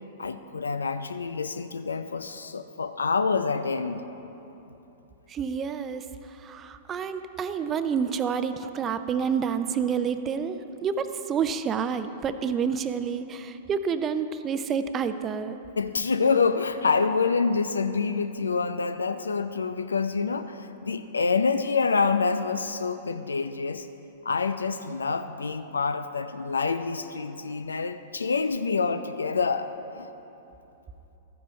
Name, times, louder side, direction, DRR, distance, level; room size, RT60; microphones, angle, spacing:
voice 1, 0.2-4.0 15.8-23.9 24.2-30.1, left 4 dB, 80° left, 10 dB, 0.4 m, -27 dB
voice 2, 5.3-15.6, right 6 dB, 25° right, 10 dB, 0.5 m, -29 dB
13.5 x 10.0 x 3.2 m, 3.0 s
figure-of-eight pair, 105°, 0 cm